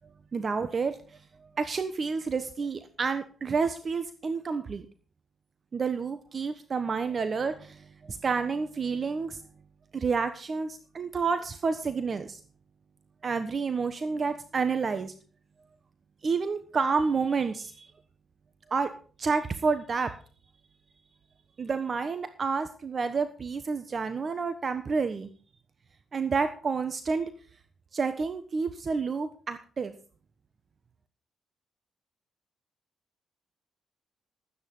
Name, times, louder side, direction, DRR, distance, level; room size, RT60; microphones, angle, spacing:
voice 1, 0.3-1.0 1.6-4.9 5.7-9.4 9.9-12.4 13.2-15.1 16.2-17.9 18.7-18.9 19.2-20.1 21.6-25.3 26.1-27.3 27.9-29.9, right 5 dB, 40° right, 10 dB, 1.1 m, -29 dB
13.0 x 9.3 x 5.5 m, 0.41 s
cardioid pair, 85°, 0 cm